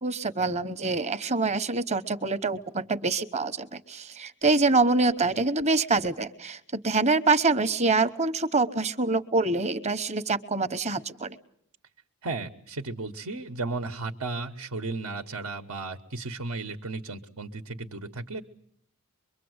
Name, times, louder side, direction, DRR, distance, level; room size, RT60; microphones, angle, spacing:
voice 1, 0.0-11.4, right 3 dB, 30° right, 12 dB, 1.0 m, -25 dB
voice 2, 12.2-18.4, right 3 dB, 85° right, 7 dB, 1.3 m, -34 dB
24.0 x 23.5 x 8.0 m, 0.67 s
head